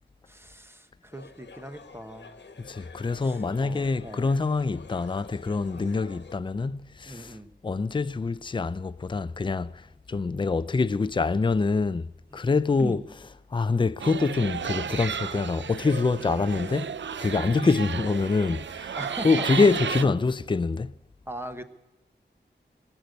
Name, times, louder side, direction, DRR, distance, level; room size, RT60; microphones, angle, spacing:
voice 1, 0.3-2.4 3.2-4.3 5.7-6.0 7.0-7.5 10.1-10.3 12.3-12.4 12.8-13.0 13.7-14.0 16.5-16.6 17.5-17.7 18.9-19.5 20.0-20.1 21.3-21.6, right 1 dB, 15° right, 1.1 m, -40 dB
sound 1, 1.1-6.4, left 4 dB, 75° left, 1.2 m, -48 dB
voice 2, 2.6-7.4 7.6-12.1 12.3-13.0 13.5-16.9 17.2-19.0 19.2-20.9, left 4 dB, 25° left, 0.4 m, -25 dB
sound 2, 14.0-20.0, right 7 dB, 85° right, 0.5 m, -33 dB
19.5 x 6.8 x 9.4 m
wide cardioid pair, 90°, 18 cm